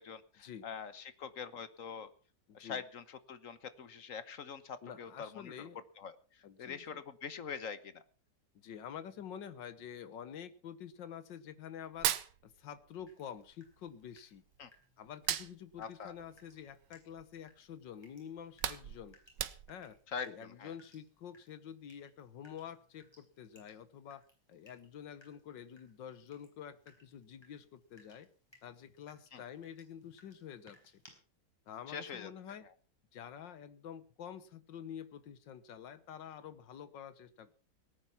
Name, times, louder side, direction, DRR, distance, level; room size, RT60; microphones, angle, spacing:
voice 1, 0.0-2.1 2.5-5.7 6.0-6.2 6.6-8.0 14.6-14.7 15.8-16.1 20.1-20.7 29.3-29.4 31.9-32.3, left 6 dB, 50° left, 14 dB, 1.3 m, -44 dB
voice 2, 2.5-2.8 4.8-5.8 6.4-7.0 8.5-12.1 12.4-14.4 15.0-19.2 19.7-20.0 20.2-24.2 24.5-28.3 28.6-31.0 31.7-32.7 33.1-37.5, left 8 dB, 85° left, 14 dB, 1.8 m, -48 dB
Hands, 11.8-13.1 13.4-14.7 15.1-17.4 17.8-18.0 18.3-20.0, right 11 dB, 80° right, 1.6 m, -38 dB
Water tap faucet / Drip, 13.1-31.1, left 1 dB, 15° left, 5.2 m, -67 dB
18.0 x 9.7 x 5.9 m, 0.41 s
omnidirectional pair, 1.9 m